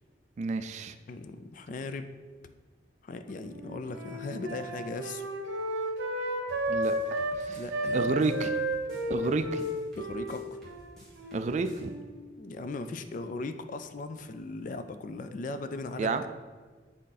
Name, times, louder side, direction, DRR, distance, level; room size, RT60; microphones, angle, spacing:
voice 1, 0.4-1.0 6.7-6.9 7.4-7.6 7.9-8.5 9.1-9.6 11.3-11.9 16.0-16.2, right 4 dB, 40° right, 10 dB, 0.3 m, -30 dB
voice 2, 1.1-2.1 3.0-5.3 7.5-8.3 10.0-10.6 12.4-16.3, left 3 dB, 45° left, 10 dB, 0.4 m, -38 dB
Wind instrument woodwind instrument, 3.4-7.4 7.7-12.2, right 1 dB, 80° right, 0.9 m, -33 dB
sound 1, 6.5-11.9, equal, 5° left, 1.6 m, -53 dB
7.7 x 3.7 x 4.0 m, 1.4 s
head